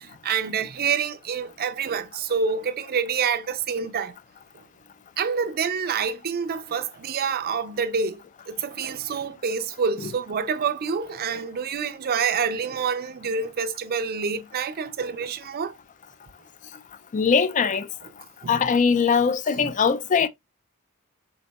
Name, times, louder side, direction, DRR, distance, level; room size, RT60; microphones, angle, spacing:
voice 1, 0.0-4.1 5.2-15.8 18.4-18.7 19.6-19.7, right 6 dB, 45° right, 0.5 m, -27 dB
voice 2, 17.1-17.9 18.5-20.3, left 6 dB, 35° left, 0.4 m, -21 dB
4.1 x 3.9 x 2.2 m
head